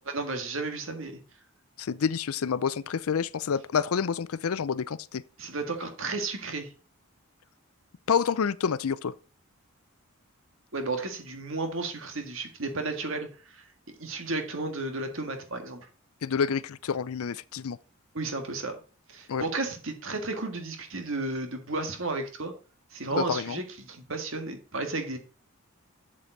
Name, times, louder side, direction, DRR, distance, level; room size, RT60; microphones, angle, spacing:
voice 1, 0.1-1.2 5.4-6.7 10.7-13.6 14.0-15.8 18.1-18.8 19.1-22.5 22.9-25.2, right 3 dB, 60° right, 1.9 m, -33 dB
voice 2, 1.8-5.2 8.1-9.1 16.2-17.8 19.3-19.4 23.1-23.6, left 6 dB, 75° left, 0.5 m, -28 dB
7.8 x 7.5 x 4.0 m
head